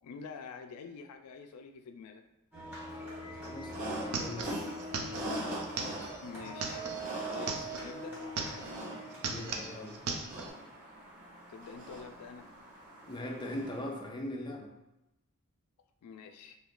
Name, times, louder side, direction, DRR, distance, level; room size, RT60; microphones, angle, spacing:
voice 1, 0.0-2.2 6.2-6.9 7.3-8.2 11.5-12.5 16.0-16.6, left 5 dB, 90° left, 6 dB, 0.3 m, -47 dB
sound 1, 2.5-10.8, right 1 dB, 10° right, 1.2 m, -44 dB
voice 2, 3.3-4.7 9.2-10.0 13.1-14.7, left 1 dB, 20° left, 0 dB, 0.4 m, -40 dB
sound 2, 3.4-3.5 3.7-7.9 8.2-8.8 9.1-10.5, right 4 dB, 75° right, 0.4 m, -38 dB
sound 3, 3.7-14.0, right 1 dB, 40° right, 0.8 m, -43 dB
2.7 x 2.4 x 3.6 m, 0.94 s
head